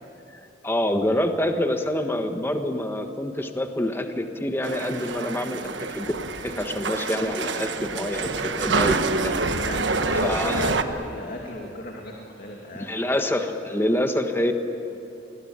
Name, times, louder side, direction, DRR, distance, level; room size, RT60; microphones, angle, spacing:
voice 1, 0.6-6.1 6.4-9.0 9.2-9.6 10.2-10.6 12.9-14.5, left 1 dB, 15° left, 6 dB, 1.4 m, -26 dB
sound 1, 4.6-10.8, right 3 dB, 90° right, 1.3 m, -27 dB
voice 2, 8.8-9.3 9.5-13.0, left 1 dB, 55° left, 0 dB, 2.5 m, -36 dB
26.5 x 21.5 x 8.8 m, 2.8 s
head